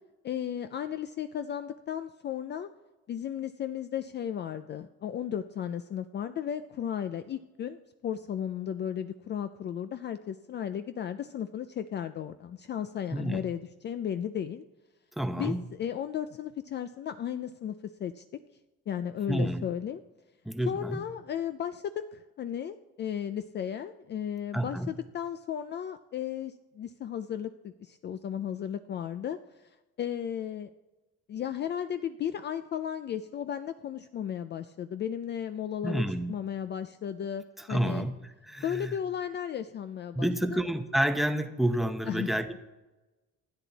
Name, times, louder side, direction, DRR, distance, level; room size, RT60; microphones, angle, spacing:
voice 1, 0.2-2.7 3.1-14.6 15.4-18.2 18.9-20.0 20.7-29.4 30.0-30.7 31.3-36.0 36.3-38.1 38.6-40.6 42.1-42.4, left 9 dB, 35° left, 10 dB, 0.4 m, -35 dB
voice 2, 15.2-15.6 19.3-19.6 20.4-21.0 24.5-24.9 35.8-36.3 37.6-39.0 40.1-42.6, right 1 dB, ahead, 7 dB, 0.8 m, -29 dB
26.5 x 10.0 x 4.0 m, 1.1 s
cardioid pair, 175°, 29 cm